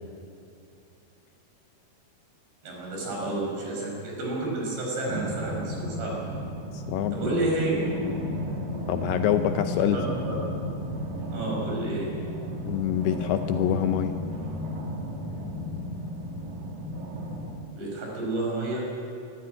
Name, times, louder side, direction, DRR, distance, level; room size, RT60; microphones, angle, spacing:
voice 1, 2.6-6.1 7.1-7.8 9.9-10.3 11.3-12.1 17.8-18.8, right 2 dB, 75° right, -2 dB, 7.2 m, -30 dB
sound 1, 5.1-17.6, equal, 50° right, 3.2 m, -34 dB
voice 2, 6.7-7.2 8.9-10.0 12.6-14.1, left 11 dB, 80° left, 8 dB, 2.4 m, -25 dB
20.5 x 13.5 x 9.5 m, 2.6 s
omnidirectional pair, 5.0 m